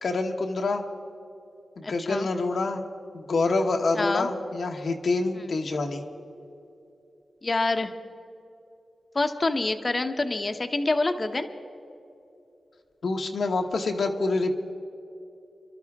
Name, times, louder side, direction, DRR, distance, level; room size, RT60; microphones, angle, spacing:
voice 1, 0.0-0.8 1.8-2.8 3.1-6.0 13.0-14.6, left 3 dB, 75° left, 3 dB, 1.2 m, -26 dB
voice 2, 1.8-2.3 3.9-4.3 7.4-7.9 9.1-11.5, left 2 dB, 40° left, 7 dB, 1.0 m, -26 dB
27.0 x 12.0 x 3.6 m, 2.8 s
cardioid pair, 70°, 0 cm